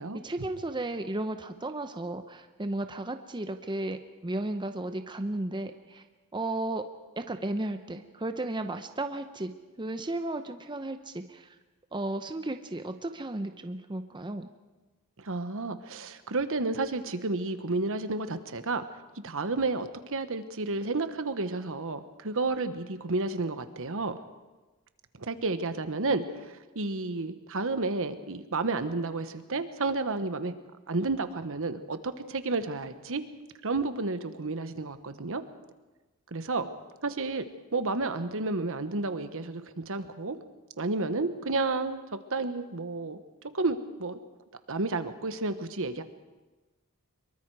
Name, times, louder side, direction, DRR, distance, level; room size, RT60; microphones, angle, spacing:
voice 1, 0.2-6.0 6.3-6.8 7.2-9.5 9.8-11.5 11.9-14.5, right 2 dB, 20° right, 7 dB, 0.8 m, -34 dB
voice 2, 15.2-18.8 19.2-24.2 25.2-30.5 30.9-33.2 33.6-35.4 36.3-36.7 37.0-37.4 37.7-40.4 40.8-43.2 43.5-44.2 44.7-46.0, right 3 dB, 65° right, 10 dB, 1.2 m, -31 dB
24.5 x 23.0 x 4.8 m, 1.2 s
head